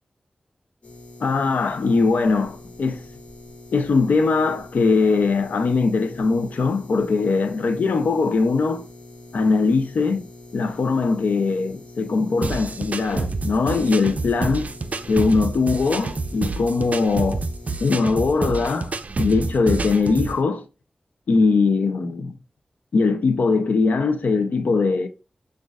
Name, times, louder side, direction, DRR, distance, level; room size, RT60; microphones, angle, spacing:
sound 1, 0.8-18.0, left 2 dB, 50° left, 1.4 m, -44 dB
voice 1, 1.2-3.0 3.7-8.9 9.3-10.2 10.5-14.7 15.1-17.4 17.8-20.6 21.3-22.3 22.9-25.1, left 4 dB, 90° left, 0.5 m, -21 dB
sound 2, 12.4-20.4, right 3 dB, 60° right, 0.4 m, -28 dB
6.3 x 2.4 x 2.3 m
cardioid pair, 45°, 3 cm